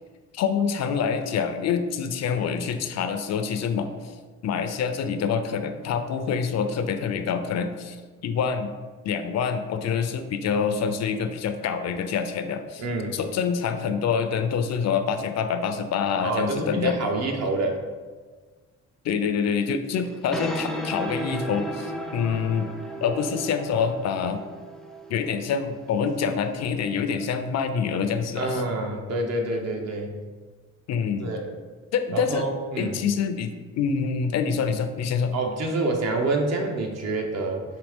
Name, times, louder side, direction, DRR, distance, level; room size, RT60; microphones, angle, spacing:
voice 1, 0.3-3.9 4.4-8.0 8.2-8.7 9.0-12.8 13.1-17.1 19.0-22.7 23.0-24.4 25.1-28.6 30.9-31.3 31.9-32.5 32.8-35.3, left 6 dB, 60° left, 9 dB, 0.5 m, -26 dB
voice 2, 12.8-13.2 16.2-17.8 28.4-30.1 31.2-31.5 32.1-33.0 35.3-37.6, right 2 dB, 60° right, 2 dB, 0.8 m, -27 dB
sound 1, 20.0-27.2, equal, ahead, 0.4 m, -35 dB
5.1 x 2.7 x 3.5 m, 1.4 s
cardioid pair, 90°, 30 cm